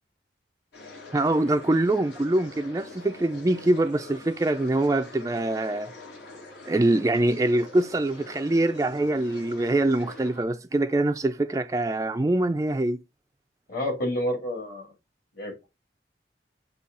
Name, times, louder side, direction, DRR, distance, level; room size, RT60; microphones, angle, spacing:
sound 1, 0.7-10.4, left 2 dB, 75° left, 2.7 m, -45 dB
voice 1, 1.1-5.9 6.7-13.0, right 2 dB, 20° right, 0.3 m, -24 dB
voice 2, 13.7-14.9 15.4-15.7, left 1 dB, 50° left, 2.7 m, -29 dB
6.8 x 2.8 x 5.3 m
head